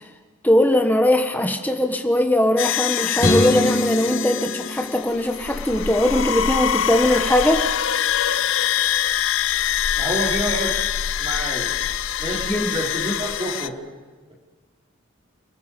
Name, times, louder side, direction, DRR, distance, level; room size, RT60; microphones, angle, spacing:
voice 1, 0.4-7.7 12.5-12.7, left 1 dB, 10° left, 4 dB, 1.4 m, -20 dB
sound 1, 2.6-13.7, left 10 dB, 70° left, 0.6 m, -24 dB
sound 2, 3.2-5.6, left 1 dB, 40° left, 4.0 m, -24 dB
voice 2, 9.6-10.7 11.2-11.7 12.2-13.8, right 1 dB, 25° right, -3 dB, 5.2 m, -28 dB
29.5 x 18.5 x 5.4 m, 1.3 s
head